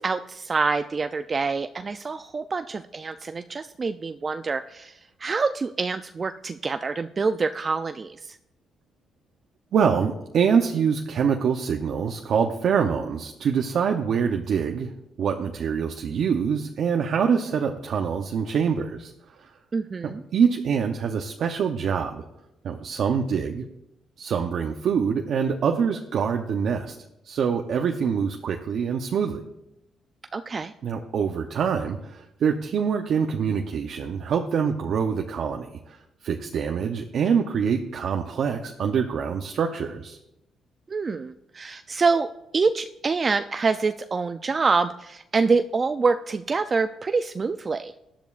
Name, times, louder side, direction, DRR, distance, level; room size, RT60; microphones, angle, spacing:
voice 1, 0.0-8.4 19.7-20.2 30.3-30.7 40.9-42.3 42.5-47.9, right 4 dB, 35° right, 9 dB, 0.4 m, -26 dB
voice 2, 9.7-14.9 15.2-19.1 20.0-22.2 22.6-23.6 24.2-27.0 27.2-29.4 30.8-36.0 36.2-40.2, right 6 dB, 65° right, 3 dB, 0.7 m, -25 dB
17.5 x 10.5 x 2.5 m, 0.86 s
cardioid pair, 90°, 0 cm